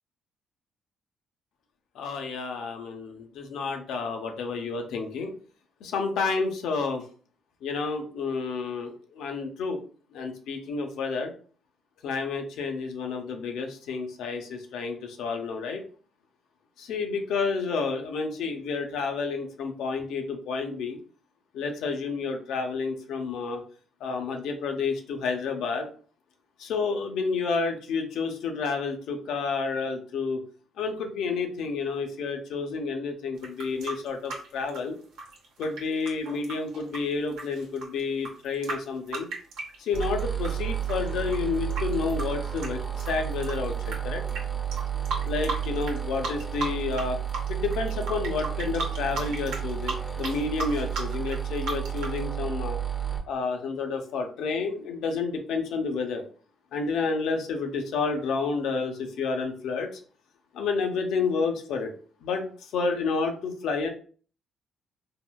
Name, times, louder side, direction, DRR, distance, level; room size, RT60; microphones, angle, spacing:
voice 1, 2.0-5.3 5.8-7.0 7.6-9.8 10.1-11.3 12.0-15.8 16.8-21.0 21.5-23.6 24.0-25.9 26.6-30.4 30.8-35.0 35.6-39.3 39.8-44.2 45.3-47.2 47.5-52.8 53.3-56.2 56.7-59.9 60.5-61.9 62.2-62.5 62.7-63.9, left 4 dB, 85° left, 4 dB, 0.5 m, -30 dB
sound 1, 33.4-40.5 40.8-44.0 44.3-44.4 44.7-46.0 46.2-47.0 47.3-52.2, right 3 dB, 85° right, 0.8 m, -35 dB
sound 2, 39.9-53.2, right 9 dB, ahead, 0.7 m, -32 dB
3.5 x 2.1 x 2.2 m, 0.42 s
cardioid pair, 90°, 0 cm